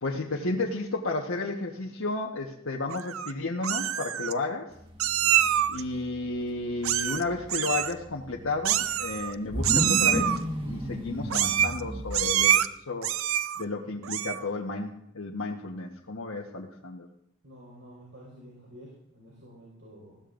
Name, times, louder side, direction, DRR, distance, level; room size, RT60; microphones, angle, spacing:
voice 1, 0.0-4.7 5.7-13.1 13.6-17.1, left 3 dB, 85° left, -1 dB, 1.3 m, -32 dB
Meow, 2.9-3.3 3.6-4.3 5.0-5.8 6.8-7.2 7.5-7.9 8.6-9.3 9.6-10.4 11.3-11.8 12.1-12.7 13.0-13.6 14.0-14.5, right 11 dB, 85° right, 0.5 m, -25 dB
sound 1, 4.7-12.5, equal, 25° right, 1.6 m, -34 dB
voice 2, 17.4-20.2, equal, 60° right, -4 dB, 5.0 m, -50 dB
20.0 x 16.0 x 2.6 m, 0.76 s
head